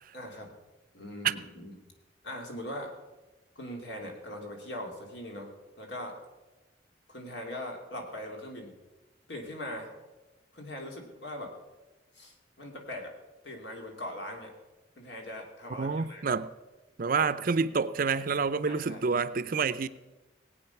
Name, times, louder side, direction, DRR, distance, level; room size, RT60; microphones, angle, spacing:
voice 1, 0.1-0.5 0.9-1.8 2.2-2.9 3.6-5.5 5.8-6.2 7.1-8.7 9.3-9.9 10.5-11.5 12.1-13.1 13.4-14.5 15.0-16.3 18.7-19.0, left 1 dB, 70° left, 2.8 m, -40 dB
voice 2, 15.8-16.5 17.0-19.9, right 5 dB, 50° right, 0.5 m, -28 dB
18.5 x 8.9 x 5.9 m
head